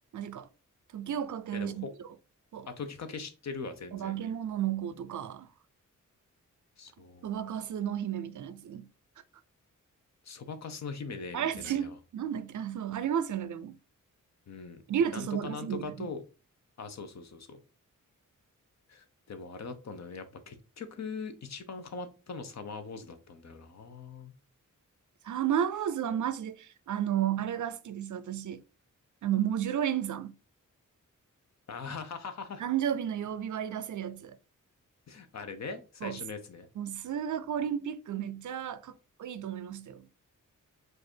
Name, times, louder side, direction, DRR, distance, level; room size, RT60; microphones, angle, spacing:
voice 1, 0.1-0.5 0.9-1.9 2.5-2.7 3.9-5.5 7.2-8.9 11.3-13.8 14.9-16.1 25.2-28.6 29.2-30.3 32.6-34.4 36.0-36.2 36.8-40.1, right 9 dB, 65° right, 0.5 m, -32 dB
voice 2, 1.5-1.9 2.7-4.2 6.8-7.5 10.2-12.0 14.5-14.8 15.1-16.2 16.8-17.6 18.9-24.3 31.7-32.6 35.1-36.7, left 4 dB, 55° left, 0.8 m, -41 dB
4.7 x 2.6 x 4.4 m
wide cardioid pair, 135°, 32 cm